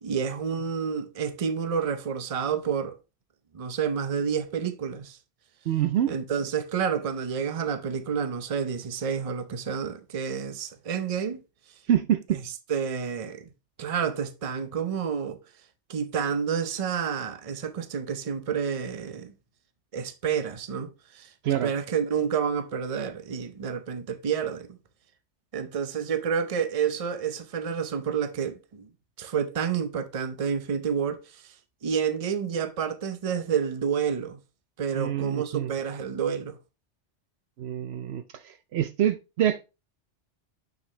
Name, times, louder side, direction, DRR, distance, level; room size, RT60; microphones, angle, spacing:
voice 1, 0.0-3.0 3.5-5.2 6.1-11.4 12.7-13.5 13.8-15.4 15.9-19.3 19.9-21.3 21.6-24.8 25.5-28.9 29.2-31.4 31.8-34.4 34.8-36.6, right 7 dB, 35° right, 0.7 m, -29 dB
voice 2, 5.7-6.1 11.9-12.4 21.4-21.7 34.9-35.7 37.6-39.6, right 11 dB, 70° right, 0.8 m, -26 dB
6.5 x 5.9 x 3.2 m
omnidirectional pair, 1.2 m